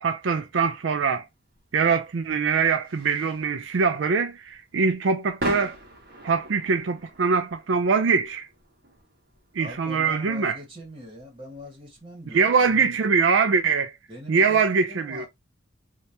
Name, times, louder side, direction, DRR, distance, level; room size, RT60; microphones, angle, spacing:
voice 1, 0.0-1.3 1.7-5.8 6.2-8.5 9.5-10.6 12.3-13.9 14.3-15.3, right 5 dB, 90° right, 0.5 m, -23 dB
sound 1, 1.5-12.8, right 1 dB, 55° right, 1.3 m, -41 dB
voice 2, 9.6-13.0 14.1-15.3, equal, 30° right, 1.8 m, -42 dB
3.3 x 2.8 x 2.7 m
head